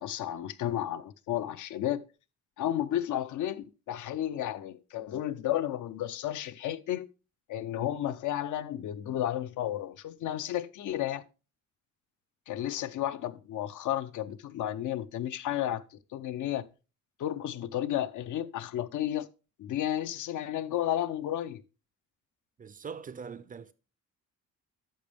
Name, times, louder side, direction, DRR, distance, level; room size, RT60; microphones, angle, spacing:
voice 1, 0.0-2.0 2.6-7.1 7.5-11.2 12.5-16.7 17.2-19.3 19.6-21.6, left 12 dB, 70° left, 0.6 m, -32 dB
voice 2, 22.6-23.7, right 6 dB, 30° right, 0.4 m, -42 dB
10.5 x 6.7 x 3.4 m
wide cardioid pair, 175°, 31 cm